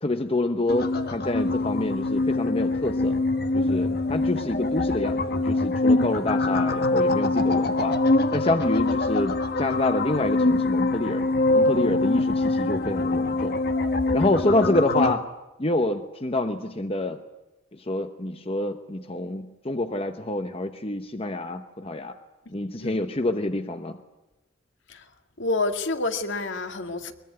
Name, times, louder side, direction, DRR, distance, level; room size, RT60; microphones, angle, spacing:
voice 1, 0.0-3.2 3.5-8.0 8.3-11.3 11.5-13.6 14.1-15.3 15.6-17.2 17.7-22.2 22.5-24.0, left 2 dB, 30° left, 0.9 m, -27 dB
sound 1, 0.7-15.1, left 2 dB, 50° left, 1.3 m, -24 dB
voice 2, 22.5-23.0 24.9-25.0 25.4-27.1, left 3 dB, 65° left, 2.0 m, -29 dB
22.0 x 21.5 x 9.7 m
head